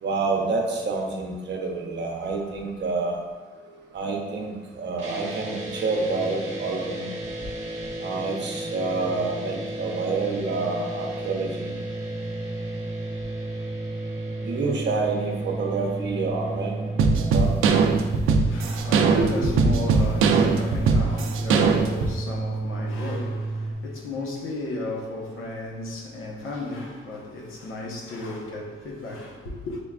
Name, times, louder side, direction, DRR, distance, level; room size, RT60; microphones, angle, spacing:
voice 1, 0.0-3.2 3.9-7.1 8.0-11.8 14.4-16.9 17.2-17.5 19.2-19.3 20.2-20.3, right 3 dB, 60° right, 0.8 m, -28 dB
sound 1, 5.0-23.7, right 2 dB, 35° right, 1.0 m, -32 dB
sound 2, 17.0-22.1, right 5 dB, 85° right, 0.4 m, -21 dB
voice 2, 18.1-29.8, left 2 dB, 85° left, 0.9 m, -34 dB
6.8 x 2.3 x 2.4 m
cardioid pair, 100°, 21 cm